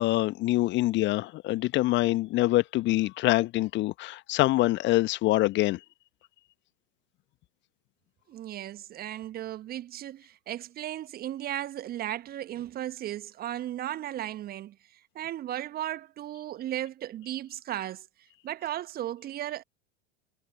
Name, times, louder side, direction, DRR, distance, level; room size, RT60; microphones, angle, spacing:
voice 1, 0.0-5.8, left 17 dB, 30° left, 1.5 m, -25 dB
voice 2, 8.3-18.1 18.4-19.6, right 12 dB, 25° right, 1.4 m, -36 dB
figure-of-eight pair, 90°, 36 cm